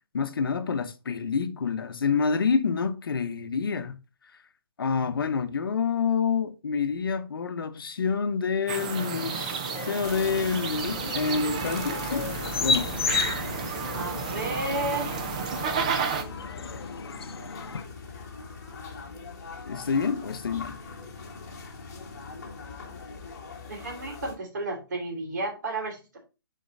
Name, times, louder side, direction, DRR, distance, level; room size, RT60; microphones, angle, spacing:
voice 1, 0.1-4.0 4.8-12.3 12.6-12.9 19.7-20.8, left 5 dB, 65° left, 1.0 m, -27 dB
sound 1, 8.7-16.2, right 6 dB, 20° right, 0.4 m, -32 dB
sound 2, 8.8-17.8, left 5 dB, 85° left, 0.6 m, -34 dB
sound 3, 10.0-24.4, left 3 dB, 45° left, 1.8 m, -40 dB
voice 2, 13.9-15.1 23.7-26.2, right 2 dB, 45° right, 2.7 m, -32 dB
7.6 x 4.3 x 4.0 m
hypercardioid pair, 175°, 13 cm